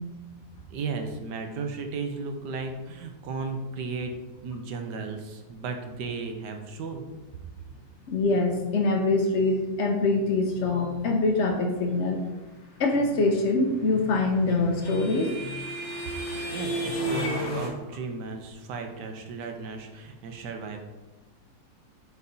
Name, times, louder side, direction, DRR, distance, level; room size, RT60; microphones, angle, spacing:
voice 1, 0.7-4.1 4.4-7.1 16.5-20.8, right 4 dB, 70° right, 5 dB, 1.3 m, -35 dB
voice 2, 8.1-12.2 12.8-15.4, left 2 dB, 85° left, 2 dB, 0.6 m, -24 dB
sound 1, 13.8-17.7, equal, 40° left, 1.4 m, -32 dB
8.1 x 4.8 x 2.7 m, 1.2 s
omnidirectional pair, 2.0 m